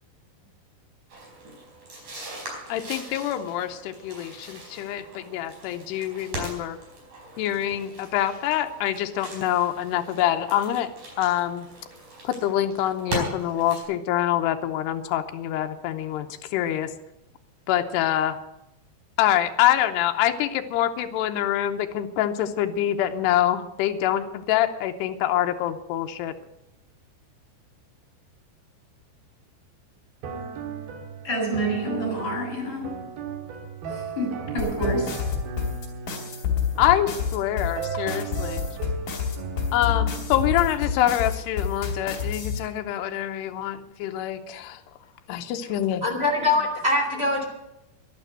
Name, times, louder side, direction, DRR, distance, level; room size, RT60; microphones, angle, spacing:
sound 1, 1.1-13.8, right 1 dB, 40° right, 5.6 m, -39 dB
voice 1, 2.7-6.8 7.4-10.9 11.2-11.7 12.2-16.9 17.7-18.4 19.2-26.3 36.8-38.6 39.7-44.8 45.3-46.0, left 12 dB, 80° left, 6 dB, 2.7 m, -25 dB
sound 2, 30.2-40.7, right 6 dB, 60° right, 3.0 m, -36 dB
voice 2, 31.2-32.9 33.9-35.1, right 1 dB, 25° left, -2 dB, 7.0 m, -28 dB
sound 3, 34.6-42.6, left 7 dB, 50° left, 4.2 m, -28 dB
voice 3, 46.0-47.4, left 2 dB, 25° right, 0 dB, 1.4 m, -23 dB
11.5 x 11.5 x 7.9 m, 0.90 s
omnidirectional pair, 5.4 m